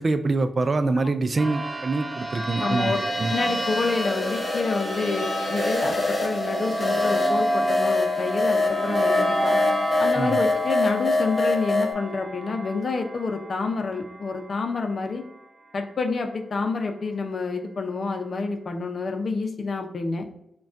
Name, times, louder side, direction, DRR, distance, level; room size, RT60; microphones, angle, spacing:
voice 1, 0.0-3.3 10.1-10.4, right 3 dB, 45° right, 10 dB, 0.3 m, -25 dB
sound 1, 1.4-14.6, right 1 dB, 25° right, 1.2 m, -30 dB
voice 2, 2.6-3.0 3.3-9.6 10.0-15.2 15.7-20.3, left 4 dB, 60° left, 5 dB, 0.5 m, -28 dB
sound 2, 2.9-11.9, left 3 dB, 35° left, 1.2 m, -26 dB
6.0 x 2.3 x 2.5 m, 0.79 s
cardioid pair, 65°, 0 cm